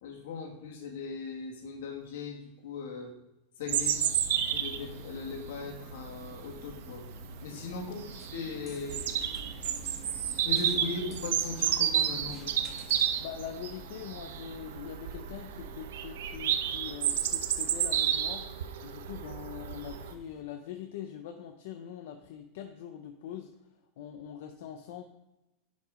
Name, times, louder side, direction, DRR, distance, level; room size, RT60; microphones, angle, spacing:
voice 1, 0.0-3.1 3.6-4.0 4.4-7.0 7.4-9.1 10.5-12.5, left 4 dB, 75° left, 2 dB, 2.0 m, -39 dB
voice 2, 3.6-4.1 7.5-7.8 13.2-18.5 18.8-23.5 24.0-25.0, left 9 dB, 60° left, 6 dB, 0.8 m, -43 dB
Bird vocalization bird call bird song, 3.7-20.1, right 9 dB, 85° right, 0.8 m, -32 dB
sound 1, 4.3-20.4, right 3 dB, 20° right, 1.4 m, -54 dB
sound 2, 8.1-13.3, left 2 dB, 15° left, 1.5 m, -55 dB
10.5 x 5.3 x 5.0 m, 0.98 s
supercardioid pair, 170°, 0 cm